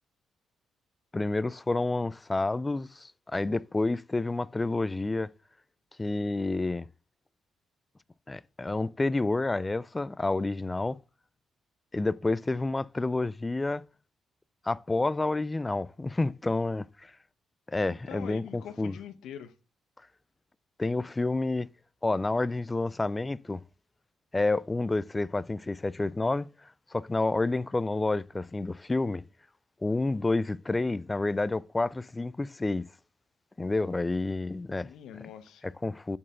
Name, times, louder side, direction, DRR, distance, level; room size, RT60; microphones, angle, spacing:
voice 1, 1.1-5.3 6.0-6.9 8.3-11.0 11.9-13.9 14.6-17.1 17.7-19.0 20.8-21.7 22.0-23.6 24.3-29.3 29.8-32.9 33.6-34.9 35.6-36.2, left 2 dB, 20° left, 0.3 m, -29 dB
voice 2, 17.8-19.5 34.8-35.7, left 9 dB, 80° left, 0.9 m, -44 dB
8.6 x 4.3 x 3.6 m
cardioid pair, 90°, 0 cm